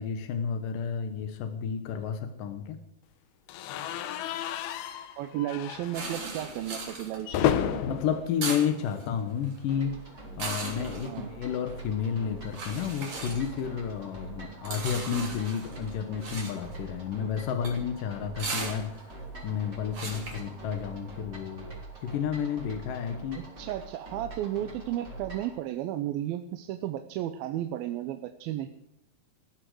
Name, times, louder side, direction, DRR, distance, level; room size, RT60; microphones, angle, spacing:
voice 1, 0.0-2.8 7.8-9.9 10.4-19.0 19.4-21.7 22.0-23.5, left 7 dB, 70° left, 7 dB, 2.7 m, -31 dB
sound 1, 3.5-9.5 9.8-10.0 10.3-10.4 11.6-14.0, left 10 dB, 90° left, 2.9 m, -34 dB
voice 2, 5.2-8.0 11.0-11.3 14.4-14.6 23.4-28.7, right 12 dB, 80° right, 8 dB, 2.5 m, -34 dB
sound 2, 5.9-21.1, right 3 dB, 45° right, 4.2 m, -39 dB
sound 3, 9.7-25.6, right 2 dB, 25° right, 4.6 m, -45 dB
20.0 x 14.5 x 4.8 m, 0.82 s
omnidirectional pair, 4.4 m